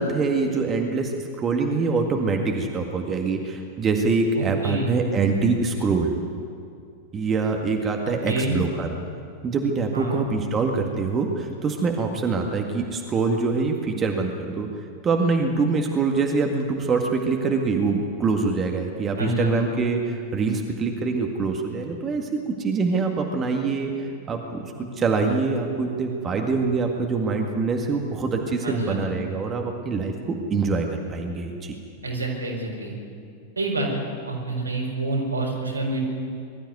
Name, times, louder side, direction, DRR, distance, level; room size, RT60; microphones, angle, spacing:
voice 1, 0.0-6.2 7.1-9.0 9.4-14.7 15.0-31.8, right 4 dB, 25° right, 2 dB, 1.9 m, -24 dB
voice 2, 4.3-4.9 8.3-8.6 9.9-10.2 19.2-19.7 28.6-29.1 32.0-32.9 33.6-36.0, right 2 dB, 80° right, 0 dB, 4.8 m, -27 dB
21.5 x 13.5 x 9.6 m, 2.4 s
figure-of-eight pair, 90°, 0 cm